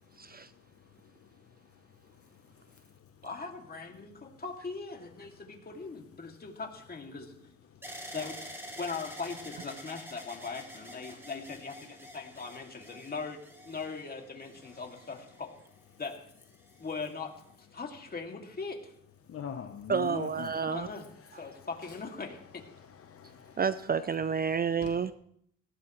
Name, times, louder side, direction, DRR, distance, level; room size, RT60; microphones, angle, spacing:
voice 1, 0.2-0.5 19.9-20.9 23.6-25.1, right 6 dB, 30° right, 0.5 m, -30 dB
voice 2, 3.2-7.3 8.1-8.4 8.7-15.5 16.0-16.2 16.8-17.3 17.6-18.9 20.6-21.1 21.4-22.7, left 4 dB, 30° left, 2.5 m, -40 dB
sound 1, 7.8-15.8 16.5-17.2, equal, 10° right, 3.1 m, -48 dB
voice 3, 19.3-20.6 21.4-21.7 22.7-23.6 24.8-24.9, left 8 dB, 50° left, 1.0 m, -41 dB
17.5 x 16.0 x 3.2 m
cardioid pair, 90°, 30 cm